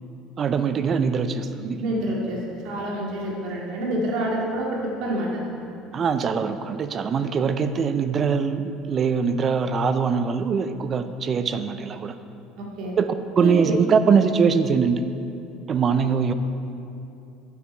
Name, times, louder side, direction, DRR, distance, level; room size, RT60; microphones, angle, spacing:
voice 1, 0.4-1.8 5.9-12.1 13.0-15.0 15.7-16.3, right 6 dB, 30° right, 11 dB, 0.4 m, -22 dB
voice 2, 1.8-5.5 12.6-12.9 13.4-13.6, right 1 dB, 65° right, -2 dB, 2.0 m, -28 dB
9.2 x 7.9 x 4.5 m, 2.7 s
cardioid pair, 160°, 0 cm